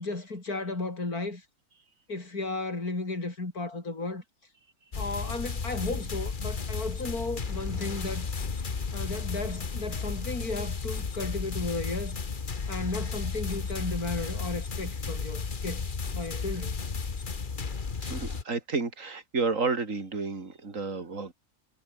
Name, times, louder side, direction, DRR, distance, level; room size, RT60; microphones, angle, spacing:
voice 1, 0.0-1.4 2.1-4.2 5.0-8.3 8.9-12.2 12.7-16.8, left 3 dB, 55° left, 5.5 m, -34 dB
sound 1, 4.9-18.4, left 5 dB, 30° left, 1.3 m, -33 dB
voice 2, 18.0-21.3, right 4 dB, 45° right, 3.5 m, -31 dB
omnidirectional pair, 1.9 m